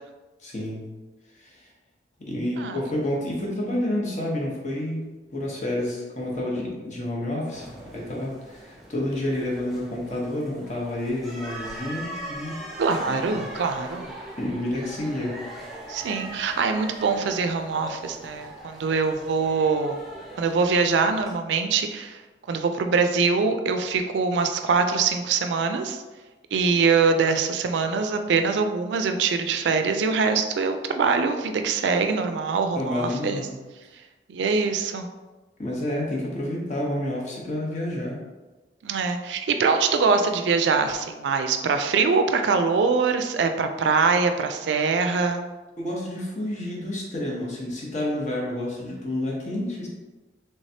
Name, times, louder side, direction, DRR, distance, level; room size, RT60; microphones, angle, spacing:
voice 1, 0.4-0.9 1.4-1.6 2.2-12.6 13.0-13.5 14.4-15.4 32.7-33.6 35.6-38.2 45.8-49.9, left 1 dB, 40° left, -3 dB, 0.8 m, -29 dB
sound 1, 7.5-21.3, right 1 dB, ahead, 0.5 m, -41 dB
voice 2, 12.8-14.2 15.9-20.0 20.4-22.2 22.5-26.0 26.5-33.4 34.3-35.1 38.8-45.5, right 4 dB, 80° right, 7 dB, 0.4 m, -23 dB
3.3 x 3.2 x 2.7 m, 1.2 s
head